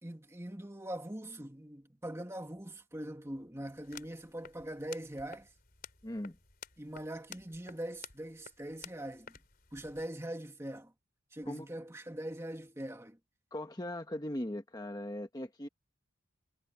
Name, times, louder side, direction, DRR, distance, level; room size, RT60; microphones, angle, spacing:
voice 1, 0.0-5.5 6.8-9.4 9.7-10.9 11.3-13.2, right 1 dB, 15° right, 1.8 m, -42 dB
sound 1, 3.8-10.1, left 7 dB, 45° left, 4.0 m, -53 dB
voice 2, 6.0-6.4 11.5-11.7 13.5-15.7, left 1 dB, 20° left, 1.2 m, -39 dB
head